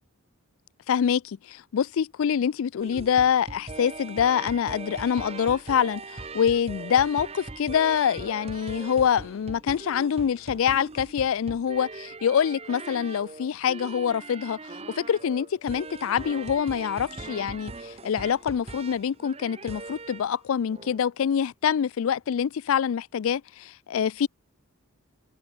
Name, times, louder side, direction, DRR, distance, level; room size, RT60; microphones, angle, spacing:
voice 1, 0.9-14.6 15.0-24.3, left 8 dB, 65° left, 0.3 m, -25 dB
sound 1, 2.8-20.3 20.7-21.0, right 3 dB, 25° right, 0.8 m, -40 dB
head